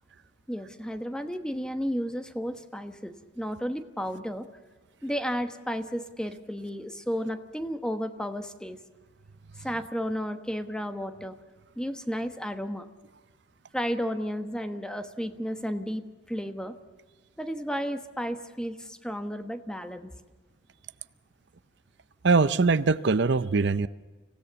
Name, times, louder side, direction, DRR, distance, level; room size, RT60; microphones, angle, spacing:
voice 1, 0.5-4.5 5.0-8.8 9.6-11.4 11.8-12.9 13.7-16.8 17.4-20.1, equal, 5° left, 8 dB, 1.1 m, -33 dB
voice 2, 22.2-23.9, right 4 dB, 65° right, 15 dB, 0.6 m, -22 dB
26.0 x 16.5 x 6.9 m, 1.3 s
head